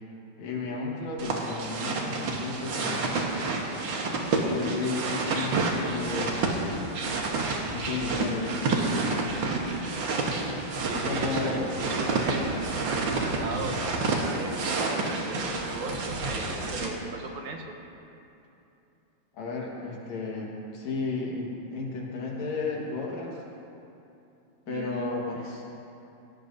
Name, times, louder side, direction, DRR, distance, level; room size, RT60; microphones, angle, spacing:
voice 1, 0.4-3.1 4.1-6.4 7.6-9.1 10.9-11.7 19.4-23.4 24.7-25.6, left 3 dB, 65° left, -2 dB, 2.7 m, -33 dB
sound 1, 1.2-16.9, right 3 dB, 55° right, 1.5 m, -29 dB
voice 2, 10.8-17.7 24.7-25.3, right 3 dB, 80° right, 2 dB, 2.6 m, -38 dB
18.5 x 16.0 x 2.7 m, 2.8 s
omnidirectional pair, 3.4 m